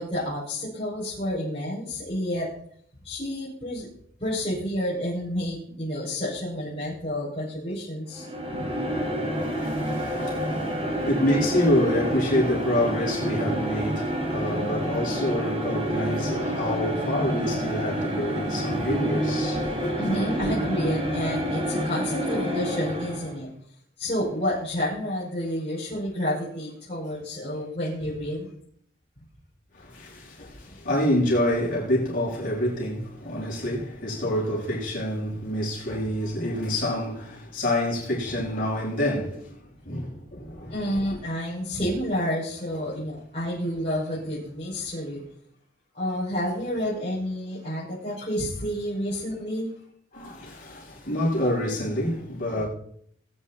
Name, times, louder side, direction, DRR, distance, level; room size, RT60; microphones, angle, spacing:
voice 1, 0.0-2.5 3.0-3.9 4.2-9.0 11.0-11.1 19.9-23.5 24.0-28.5 29.2-29.3 40.7-45.2 45.9-49.7, equal, 35° left, 6.0 m, -30 dB
sound 1, 8.1-23.4, equal, 35° right, 2.9 m, -28 dB
voice 2, 9.3-20.0 29.7-39.5 39.8-40.8 50.1-52.7, left 1 dB, 50° left, 7.4 m, -27 dB
21.0 x 10.0 x 4.4 m
head